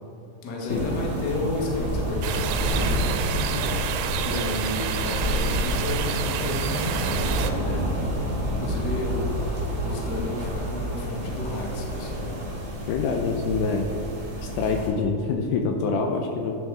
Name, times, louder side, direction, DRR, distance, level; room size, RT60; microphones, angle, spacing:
voice 1, 0.4-3.3 4.2-8.0 8.4-12.3, left 1 dB, 55° left, -1 dB, 1.2 m, -32 dB
sound 1, 0.7-14.9, equal, 30° right, 1.2 m, -29 dB
sound 2, 2.2-7.5, right 9 dB, 85° right, 2.3 m, -30 dB
voice 2, 12.9-13.9 14.4-16.6, left 4 dB, 80° left, 3 dB, 2.0 m, -25 dB
9.4 x 7.1 x 3.7 m, 2.6 s
omnidirectional pair, 3.9 m